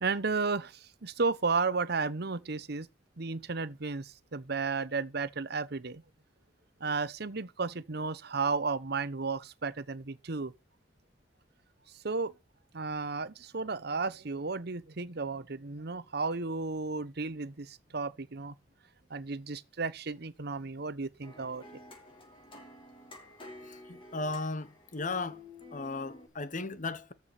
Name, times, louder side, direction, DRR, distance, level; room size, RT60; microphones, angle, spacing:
voice 1, 0.0-2.9 3.2-6.0 6.8-10.5 12.0-12.3 12.7-18.5 19.1-21.6, right 4 dB, 60° right, 1.0 m, -33 dB
sound 1, 21.2-26.3, left 2 dB, 30° left, 5.2 m, -50 dB
voice 2, 23.7-25.4 25.7-27.1, left 3 dB, 45° left, 1.2 m, -36 dB
14.0 x 5.9 x 6.0 m
head